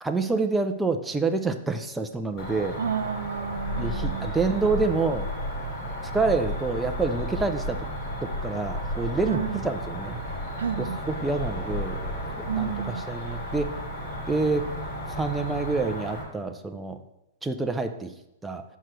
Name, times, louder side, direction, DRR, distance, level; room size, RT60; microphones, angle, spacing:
voice 1, 0.0-2.8 3.8-5.3 6.1-7.8 8.2-10.2 11.1-12.0 12.4-12.7 13.1-13.7 14.3-14.6 15.1-17.0 17.4-18.1 18.4-18.6, right 3 dB, 5° right, 6 dB, 0.5 m, -27 dB
Cricket, 2.4-16.2, equal, 35° left, 2.7 m, -36 dB
voice 2, 2.8-4.3 9.3-9.6 10.6-11.0 12.5-13.1, right 7 dB, 85° right, 12 dB, 0.4 m, -30 dB
sound 1, 3.5-15.9 16.1-16.2, equal, 85° left, 2.5 m, -36 dB
6.4 x 4.5 x 6.2 m, 0.87 s
hypercardioid pair, 145°, 0 cm